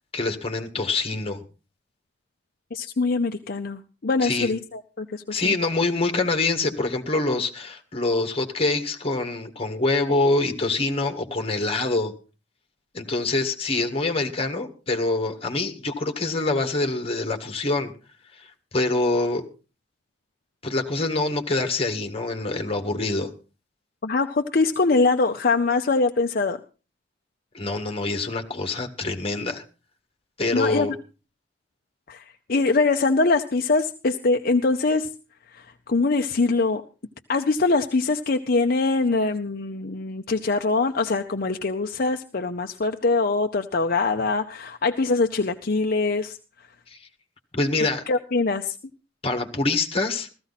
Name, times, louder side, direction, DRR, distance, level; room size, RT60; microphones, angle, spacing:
voice 1, 0.1-1.4 4.2-4.5 5.3-12.1 12.9-17.9 18.4-18.5 18.7-19.4 20.6-23.3 27.5-29.6 30.4-30.9 46.9-47.0 47.5-48.0 49.2-50.3, left 2 dB, 30° left, 6 dB, 1.8 m, -25 dB
voice 2, 2.7-5.5 24.0-26.6 30.5-30.9 32.1-35.1 35.5-36.8 37.3-46.4 48.1-48.8, left 3 dB, 55° left, 6 dB, 0.7 m, -23 dB
15.5 x 14.0 x 4.1 m, 0.34 s
head